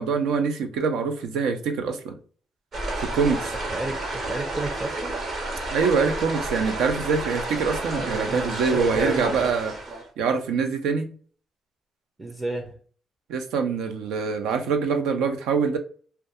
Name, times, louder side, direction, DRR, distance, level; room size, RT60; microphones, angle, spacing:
voice 1, 0.0-2.2 3.1-3.5 5.7-9.8 10.2-11.1 13.3-15.8, right 5 dB, 90° right, 6 dB, 0.5 m, -24 dB
sound 1, 2.7-10.0, right 2 dB, 55° right, 0.9 m, -30 dB
voice 2, 3.7-5.2 12.2-12.8, right 2 dB, 20° right, 3 dB, 0.5 m, -32 dB
2.3 x 2.2 x 2.7 m, 0.42 s
cardioid pair, 90°, 0 cm